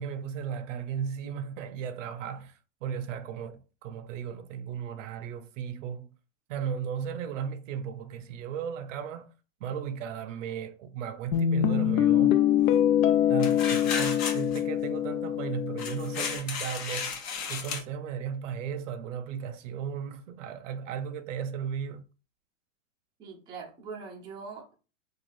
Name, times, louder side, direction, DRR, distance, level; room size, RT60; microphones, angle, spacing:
voice 1, 0.0-6.1 6.5-9.3 9.6-12.4 13.3-22.0, right 7 dB, 65° right, 0.6 m, -35 dB
Guitar, 11.3-16.4, left 10 dB, 80° left, 0.5 m, -24 dB
sound 1, 13.4-14.6 15.8-17.8, left 5 dB, 50° left, 1.0 m, -34 dB
voice 2, 23.2-24.7, right 5 dB, 10° right, 0.4 m, -42 dB
3.1 x 2.3 x 2.5 m
hypercardioid pair, 130°, 40 cm